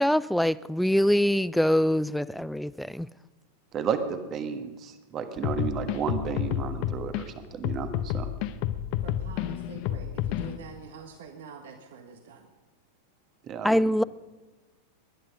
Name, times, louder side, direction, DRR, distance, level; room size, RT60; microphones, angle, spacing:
voice 1, 0.0-3.1 13.6-14.0, equal, ahead, 0.4 m, -24 dB
voice 2, 3.7-8.3 13.5-13.7, right 7 dB, 30° right, 1.5 m, -32 dB
sound 1, 5.4-7.2 7.6-10.6, left 12 dB, 45° left, 0.8 m, -30 dB
voice 3, 9.0-12.5, right 6 dB, 55° right, 1.4 m, -45 dB
20.5 x 11.0 x 5.3 m
figure-of-eight pair, 90°, 0 cm